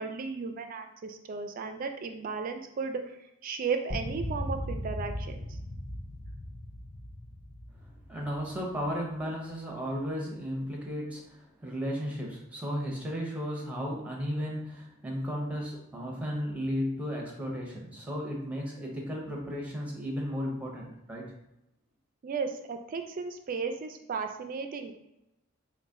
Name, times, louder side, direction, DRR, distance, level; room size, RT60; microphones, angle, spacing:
voice 1, 0.0-3.0 3.4-5.4 22.2-25.0, right 5 dB, 45° right, 6 dB, 0.3 m, -35 dB
sound 1, 3.9-9.3, left 1 dB, 30° left, 0.4 m, -38 dB
voice 2, 8.1-21.2, equal, 5° right, -2 dB, 0.8 m, -34 dB
4.0 x 2.2 x 3.6 m, 0.87 s
head